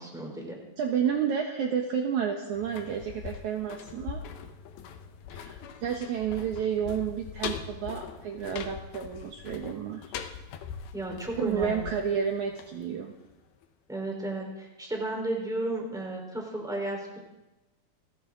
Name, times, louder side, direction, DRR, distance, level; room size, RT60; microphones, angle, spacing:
voice 1, 0.0-0.6 10.9-11.9 13.9-17.2, right 2 dB, ahead, 0 dB, 3.5 m, -33 dB
voice 2, 0.8-4.2 5.3-10.0 11.4-13.1, right 8 dB, 65° right, 2 dB, 2.2 m, -30 dB
sound 1, 2.5-13.3 13.6-13.7, left 8 dB, 90° left, 3.0 m, -41 dB
29.5 x 12.5 x 3.8 m, 1.0 s
omnidirectional pair, 4.3 m